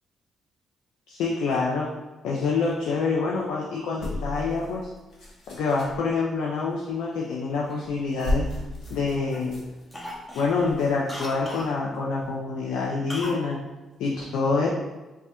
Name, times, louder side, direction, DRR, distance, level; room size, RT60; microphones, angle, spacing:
voice 1, 1.1-1.9 2.2-4.9 5.5-8.5 8.9-9.6 10.3-13.7 14.0-14.7, left 4 dB, 85° left, -3 dB, 0.5 m, -26 dB
sound 1, 4.0-6.1 7.5-7.7 8.0-11.7 12.2-12.3, left 1 dB, 65° left, 1.0 m, -34 dB
Cough, 7.7-9.0 9.3-9.6 9.9-11.7 13.1-13.5 13.7-13.8, equal, 20° left, 0.7 m, -38 dB
3.2 x 2.4 x 4.2 m, 1.1 s
cardioid pair, 90°, 0 cm